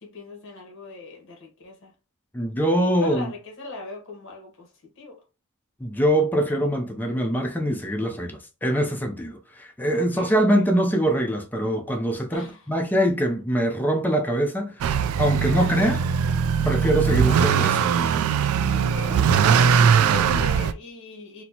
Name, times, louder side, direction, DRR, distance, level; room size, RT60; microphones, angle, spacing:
voice 1, 0.0-1.9 2.9-5.2 9.9-10.6 12.3-12.6 15.3-16.1 18.7-21.4, left 3 dB, 60° left, 1.1 m, -40 dB
voice 2, 2.3-3.3 5.8-16.0 16.6-17.9 18.2-18.3, equal, 10° left, 0.5 m, -23 dB
Motor vehicle (road) / Accelerating revving vroom, 14.8-20.7, right 7 dB, 70° right, 0.3 m, -20 dB
4.2 x 2.1 x 2.8 m
head